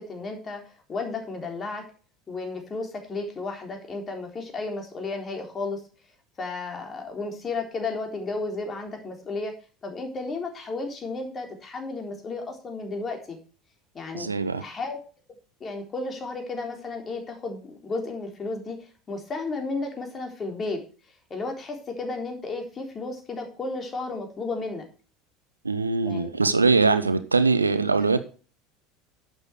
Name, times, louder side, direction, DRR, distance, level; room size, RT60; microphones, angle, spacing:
voice 1, 0.0-1.8 2.3-5.8 6.4-9.5 9.8-13.4 13.9-14.3 14.6-15.0 15.6-20.8 21.3-24.9 26.0-26.3, left 3 dB, 25° left, 3 dB, 3.8 m, -33 dB
voice 2, 14.1-14.6 25.6-28.2, right 4 dB, 85° right, 12 dB, 0.8 m, -22 dB
11.5 x 7.9 x 4.7 m, 0.37 s
figure-of-eight pair, 75°, 0 cm